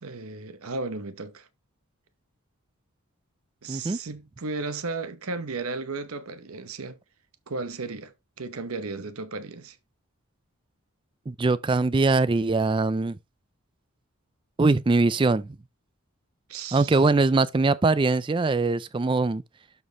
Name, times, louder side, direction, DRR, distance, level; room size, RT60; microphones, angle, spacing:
voice 1, 0.0-1.5 3.6-7.0 7.5-9.8 16.5-17.0, right 3 dB, 75° right, 0.9 m, -34 dB
voice 2, 3.7-4.0 11.3-13.2 14.6-15.5 16.7-19.4, right 3 dB, 20° right, 0.3 m, -22 dB
12.0 x 4.2 x 2.9 m
head